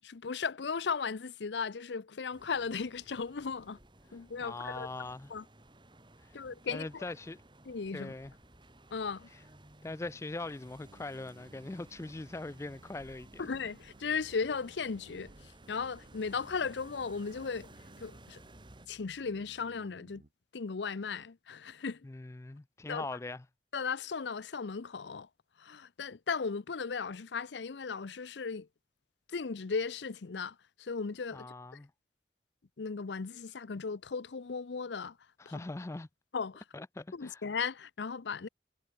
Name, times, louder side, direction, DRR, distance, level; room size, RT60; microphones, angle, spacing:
voice 1, 0.0-3.8 4.1-4.9 5.3-5.4 6.3-7.1 7.6-8.1 8.9-9.3 13.4-17.7 18.0-18.4 18.9-20.2 20.5-22.1 22.9-23.0 23.7-25.3 25.6-28.7 29.3-31.5 32.8-35.2 35.5-35.6 36.3-36.6 37.1-38.5, left 5 dB, 80° left, 0.6 m, -36 dB
sound 1, 2.3-18.9, right 1 dB, 25° right, 3.9 m, -57 dB
voice 2, 4.4-5.3 6.2-6.4 6.7-7.4 7.9-8.3 9.8-13.4 22.0-23.4 31.3-31.9 35.4-36.1 36.7-37.4, left 2 dB, 15° left, 0.3 m, -41 dB
sound 2, 10.8-20.3, right 2 dB, 50° right, 0.7 m, -60 dB
head